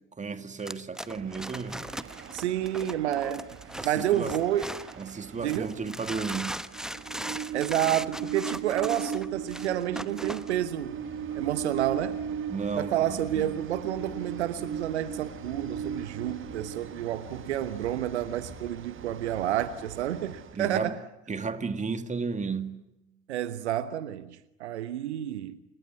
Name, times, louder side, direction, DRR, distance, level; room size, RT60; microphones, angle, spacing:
voice 1, 0.2-1.8 3.8-4.4 5.0-6.6 12.5-13.6 20.5-21.0 21.3-22.8, right 5 dB, 20° right, 2.3 m, -33 dB
sound 1, 0.6-5.1 5.5-10.5, equal, ahead, 1.0 m, -38 dB
Train, 1.1-20.6, right 8 dB, 35° right, 1.8 m, -39 dB
voice 2, 2.3-4.7 5.4-5.7 7.5-11.0 11.3-12.3 12.8-21.0 23.3-25.6, right 11 dB, 75° right, 1.2 m, -30 dB
sound 2, 10.9-12.6 13.0-14.7 15.1-16.8 17.1-18.9, left 8 dB, 65° left, 4.5 m, -52 dB
28.0 x 22.0 x 9.6 m
figure-of-eight pair, 60°, 34 cm